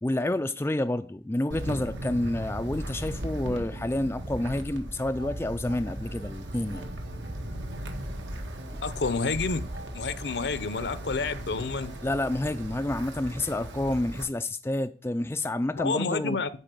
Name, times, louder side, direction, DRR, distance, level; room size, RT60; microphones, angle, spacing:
voice 1, 0.0-6.9 12.0-16.4, left 1 dB, 15° left, 0.3 m, -29 dB
Wind, 1.5-14.2, right 1 dB, 80° right, 1.6 m, -37 dB
sound 1, 5.2-13.1, equal, 55° right, 1.5 m, -53 dB
voice 2, 8.8-9.6 9.9-11.9 15.7-16.5, left 4 dB, 65° left, 0.7 m, -29 dB
10.0 x 4.2 x 7.5 m
head